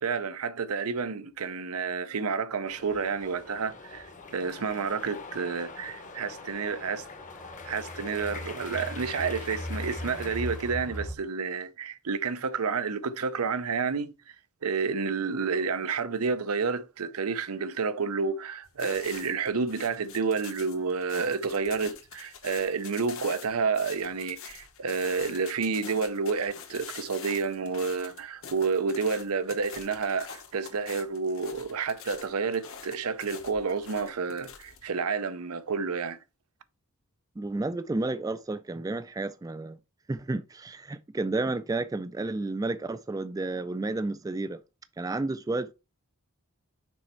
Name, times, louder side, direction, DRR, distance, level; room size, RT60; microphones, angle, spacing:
voice 1, 0.0-4.1 4.3-7.1 7.6-14.3 14.6-36.2, right 5 dB, 85° right, 0.7 m, -30 dB
sound 1, 2.7-11.0, left 4 dB, 35° left, 0.9 m, -44 dB
sound 2, 2.9-3.0 3.4-3.5 4.0-4.1 5.0-11.2, equal, ahead, 0.8 m, -40 dB
sound 3, 18.6-34.8, left 7 dB, 65° left, 1.2 m, -45 dB
voice 2, 37.4-39.8 40.1-44.6 45.0-45.7, right 2 dB, 15° right, 0.3 m, -31 dB
6.3 x 4.3 x 4.4 m
head